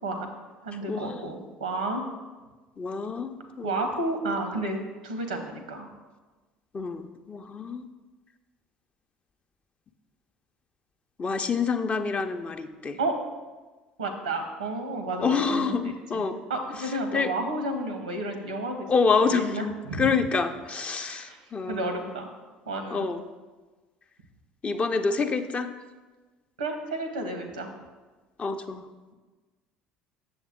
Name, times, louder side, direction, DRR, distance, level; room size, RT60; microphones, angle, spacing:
voice 1, 0.6-2.0 3.6-5.9 13.0-13.1 14.0-16.2 16.5-18.9 19.3-20.1 21.0-22.3 22.7-23.0 26.6-27.7, right 2 dB, 85° right, 6 dB, 0.9 m, -31 dB
voice 2, 2.8-3.9 6.7-7.9 11.2-13.0 15.2-16.4 17.1-17.3 18.9-22.1 22.9-23.2 24.6-25.7 28.4-28.8, left 5 dB, 30° left, 7 dB, 0.6 m, -27 dB
7.8 x 6.9 x 3.6 m, 1.3 s
figure-of-eight pair, 60°, 4 cm